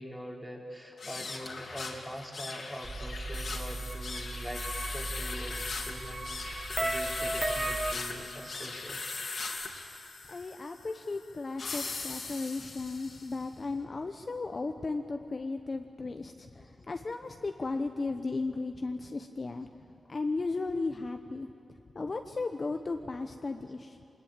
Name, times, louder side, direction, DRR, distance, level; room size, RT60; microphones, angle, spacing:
voice 1, 0.0-4.6 4.9-9.2 16.5-16.9, equal, ahead, 1 dB, 3.0 m, -43 dB
sound 1, 0.9-13.4, left 3 dB, 55° left, 2.7 m, -39 dB
sound 2, 2.8-7.9, right 2 dB, 20° right, 1.0 m, -35 dB
voice 2, 10.3-19.7 20.1-21.5 21.9-24.0, left 3 dB, 35° left, 6 dB, 0.9 m, -35 dB
23.5 x 20.0 x 8.9 m, 2.7 s
wide cardioid pair, 110°, 0 cm